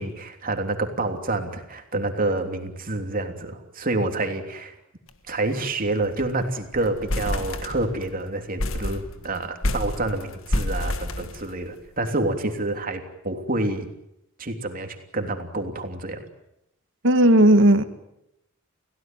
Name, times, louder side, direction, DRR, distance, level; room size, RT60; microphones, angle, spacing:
voice 1, 0.0-4.7 5.3-13.9 14.4-16.2, right 2 dB, 45° right, 3.3 m, -28 dB
sound 1, 5.1-5.3 5.6-5.7 6.0-6.4 6.7-8.1 8.6-11.9, left 1 dB, 70° left, 1.8 m, -29 dB
voice 2, 17.0-17.8, right 1 dB, 60° right, 2.2 m, -15 dB
29.5 x 17.0 x 9.2 m
head